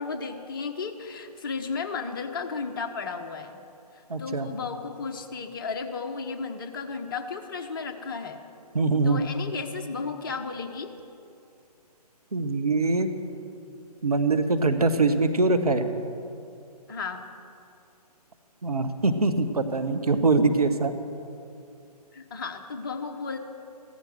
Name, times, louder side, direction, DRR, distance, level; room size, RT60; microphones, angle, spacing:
voice 1, 0.0-3.6 3.9-8.4 9.0-10.9 16.9-17.3 22.1-23.4, left 5 dB, 35° left, 5 dB, 1.0 m, -34 dB
voice 2, 4.1-4.5 8.7-9.2 12.3-13.1 14.0-15.8 18.6-20.9, right 3 dB, 65° right, 8 dB, 1.3 m, -23 dB
15.5 x 14.0 x 6.4 m, 2.6 s
figure-of-eight pair, 140°, 21 cm